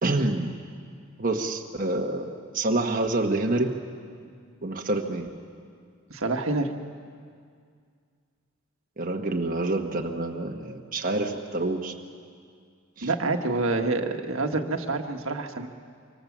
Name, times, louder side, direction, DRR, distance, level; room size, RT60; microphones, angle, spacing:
voice 1, 0.0-0.5 1.2-3.7 4.6-5.3 9.0-11.9 13.0-13.1, right 2 dB, 40° right, 1 dB, 1.3 m, -27 dB
voice 2, 6.1-6.7 13.0-15.7, right 3 dB, 65° right, 4 dB, 1.6 m, -27 dB
25.5 x 25.0 x 7.4 m, 2.1 s
head